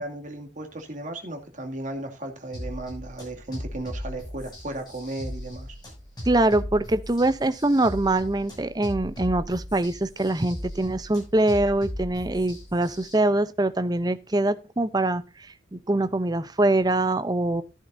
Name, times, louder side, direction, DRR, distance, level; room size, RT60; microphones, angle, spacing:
voice 1, 0.0-5.7, right 1 dB, 40° right, 2.3 m, -35 dB
sound 1, 2.5-13.1, equal, 20° left, 7.0 m, -37 dB
voice 2, 6.3-15.2 15.7-17.6, right 2 dB, 20° right, 0.6 m, -23 dB
14.0 x 10.5 x 2.6 m
head